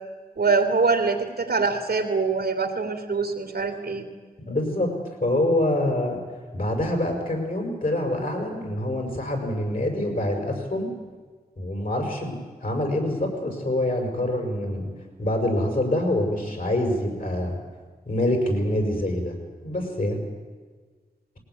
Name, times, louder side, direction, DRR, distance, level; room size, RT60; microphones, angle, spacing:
voice 1, 0.4-4.1, right 4 dB, 85° right, 5 dB, 2.8 m, -24 dB
voice 2, 4.5-4.9 5.2-6.2 6.5-10.9 11.6-14.9 15.2-17.6 18.1-19.4 19.6-20.2, left 1 dB, 60° left, 3 dB, 6.3 m, -25 dB
20.0 x 18.0 x 9.7 m, 1.4 s
cardioid pair, 45°, 16 cm